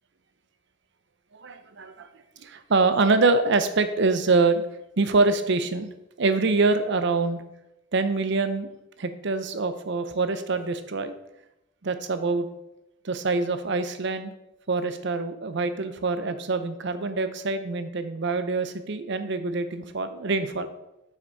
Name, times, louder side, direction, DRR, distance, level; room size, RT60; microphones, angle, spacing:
voice 1, 1.3-2.1 2.4-4.6 5.0-5.9 6.2-7.4 7.9-8.7 9.0-11.1 11.8-12.5 13.0-14.3 14.7-20.7, right 3 dB, 65° right, 10 dB, 0.7 m, -25 dB
8.1 x 5.9 x 4.0 m, 0.88 s
head